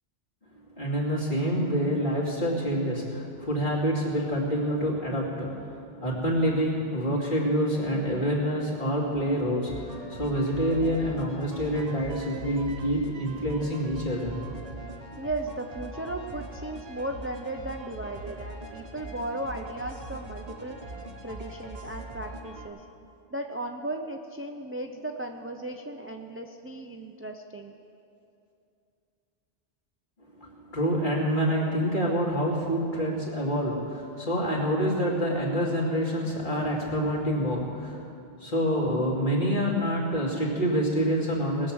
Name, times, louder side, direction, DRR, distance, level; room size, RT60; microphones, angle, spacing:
voice 1, 0.8-5.7 6.0-14.4 30.4-38.0 38.4-41.7, equal, 50° left, -5 dB, 2.8 m, -27 dB
sound 1, 9.7-22.7, right 2 dB, 40° right, 1.0 m, -42 dB
voice 2, 15.2-20.8 21.2-22.8 23.3-27.7, right 1 dB, 15° right, 4 dB, 0.4 m, -36 dB
20.0 x 7.5 x 6.3 m, 2.6 s
omnidirectional pair, 1.1 m